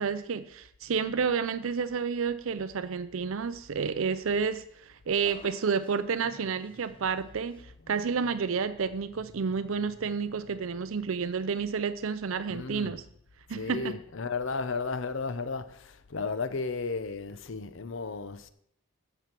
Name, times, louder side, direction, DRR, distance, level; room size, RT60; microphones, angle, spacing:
voice 1, 0.0-13.0 13.5-14.0, right 5 dB, 75° right, 0.5 m, -30 dB
sound 1, 4.2-7.6, left 2 dB, 25° left, 0.8 m, -53 dB
voice 2, 7.8-8.3 9.4-9.7 12.5-13.0 13.5-18.5, left 4 dB, 65° left, 0.7 m, -34 dB
9.1 x 7.2 x 6.0 m
head